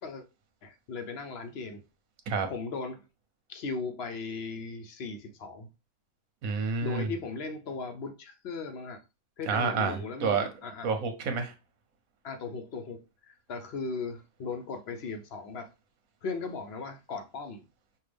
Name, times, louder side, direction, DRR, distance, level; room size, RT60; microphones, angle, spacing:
voice 1, 0.6-1.8 2.5-3.0 3.5-5.7 6.8-9.0 9.4-10.9 12.2-15.7 16.2-17.6, left 4 dB, 60° left, 0.8 m, -37 dB
voice 2, 6.4-7.1 9.5-10.5 10.8-11.5, right 5 dB, 85° right, 1.3 m, -29 dB
5.5 x 2.3 x 3.3 m
omnidirectional pair, 1.4 m